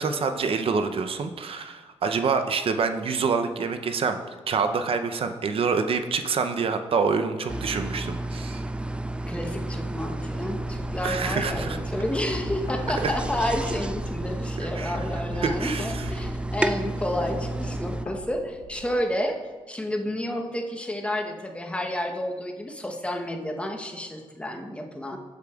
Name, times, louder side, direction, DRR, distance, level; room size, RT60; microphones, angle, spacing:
voice 1, 0.0-4.2 4.5-8.6 11.0-11.8 13.0-13.1 14.6-15.0 15.4-16.0, right 5 dB, 55° right, 8 dB, 0.6 m, -26 dB
sound 1, 7.5-18.1, right 1 dB, 10° right, 0.3 m, -31 dB
voice 2, 9.3-19.4 19.7-25.2, left 1 dB, 10° left, 3 dB, 0.9 m, -30 dB
sound 2, 10.4-19.4, left 2 dB, 85° left, 1.0 m, -41 dB
8.4 x 6.6 x 2.4 m, 1.4 s
cardioid pair, 70°, 11 cm